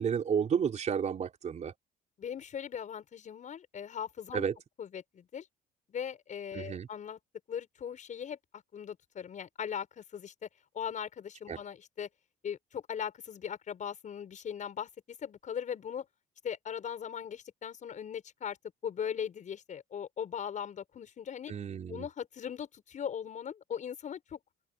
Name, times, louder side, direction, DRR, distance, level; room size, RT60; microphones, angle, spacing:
voice 1, 0.0-1.7 4.3-4.5 6.5-6.9 11.5-11.6 21.5-22.1, right 7 dB, 45° right, 4.5 m, -31 dB
voice 2, 2.2-4.4 4.8-5.5 5.9-7.2 7.5-8.4 8.7-10.5 10.7-12.1 12.4-14.9 15.2-16.1 16.4-18.6 18.8-21.5 21.9-24.4, left 8 dB, 45° left, 7.4 m, -39 dB
open air
cardioid pair, 110°, 17 cm